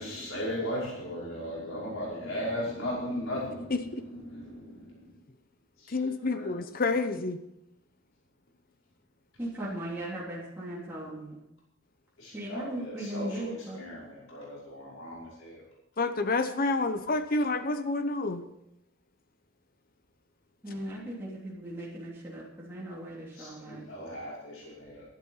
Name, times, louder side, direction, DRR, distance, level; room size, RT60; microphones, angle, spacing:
voice 1, 0.0-5.1 5.8-6.6 12.2-15.6 23.3-25.0, equal, 90° left, -6 dB, 5.4 m, -37 dB
voice 2, 3.7-4.0 5.9-7.4 16.0-18.4, left 3 dB, 45° left, 9 dB, 0.9 m, -29 dB
voice 3, 9.4-11.4 12.3-13.8 20.6-23.8, right 1 dB, 10° right, -8 dB, 3.3 m, -38 dB
12.5 x 11.5 x 5.7 m, 0.83 s
head